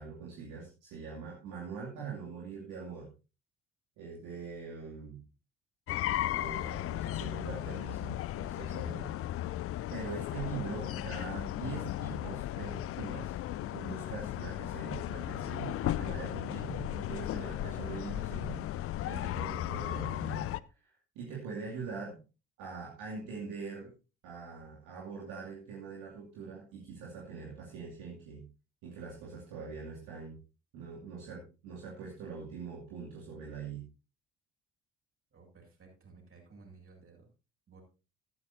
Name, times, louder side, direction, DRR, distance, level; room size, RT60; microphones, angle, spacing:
voice 1, 0.0-3.1 4.0-5.2 6.3-9.1 9.9-13.3 13.7-18.6 19.1-20.4 20.8-22.2 22.6-23.9 24.2-28.4 28.8-30.4 30.7-33.8, right 5 dB, 60° right, -3 dB, 2.7 m, -43 dB
sound 1, 5.9-20.6, left 13 dB, 40° left, 0.6 m, -36 dB
voice 2, 35.3-37.3 37.7-37.8, right 4 dB, 40° right, 0 dB, 7.3 m, -56 dB
13.5 x 13.5 x 2.7 m, 0.31 s
figure-of-eight pair, 50°, 34 cm